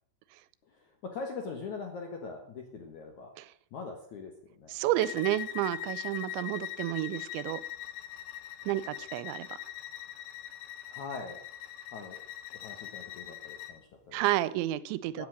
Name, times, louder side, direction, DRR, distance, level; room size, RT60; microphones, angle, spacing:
voice 1, 0.6-3.3 3.7-4.9 10.8-11.4 11.9-12.2 12.5-14.2 15.2-15.3, left 4 dB, 65° left, 3 dB, 1.9 m, -42 dB
voice 2, 4.7-7.6 8.7-9.6 14.1-15.3, right 15 dB, 85° right, 17 dB, 2.9 m, -30 dB
Bowed string instrument, 5.0-13.8, left 12 dB, 85° left, 3.4 m, -41 dB
16.0 x 8.4 x 6.4 m, 0.64 s
omnidirectional pair, 5.3 m